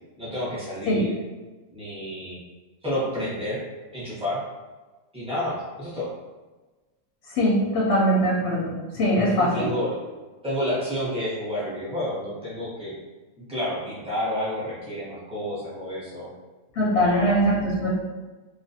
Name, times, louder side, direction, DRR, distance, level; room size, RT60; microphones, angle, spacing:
voice 1, 0.2-1.1 1.7-2.4 2.8-3.6 3.9-4.4 5.1-6.1 9.4-10.0 10.4-12.9 13.5-16.3 17.0-17.4, left 1 dB, 5° right, -9 dB, 0.6 m, -30 dB
voice 2, 7.3-9.7 16.8-17.9, equal, 65° left, -5 dB, 0.7 m, -22 dB
2.4 x 2.2 x 2.6 m, 1.2 s
omnidirectional pair, 1.4 m